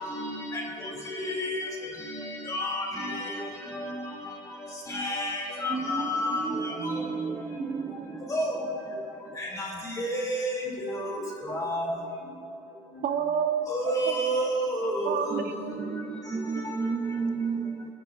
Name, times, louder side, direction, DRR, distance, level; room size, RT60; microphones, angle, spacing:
voice 1, 1.2-1.6 2.5-3.2 4.9-6.4 8.3-8.5 9.4-9.7 10.0-10.6 10.9-11.0 11.5-11.9 13.7-15.1, equal, 25° left, -2 dB, 2.6 m, -29 dB
voice 2, 5.7-8.3 15.9-17.8, right 4 dB, 25° right, 3 dB, 0.5 m, -32 dB
voice 3, 13.0-14.2 15.0-16.7, right 7 dB, 75° right, 6 dB, 0.9 m, -31 dB
24.0 x 11.0 x 2.5 m, 2.9 s
cardioid pair, 170°, 15 cm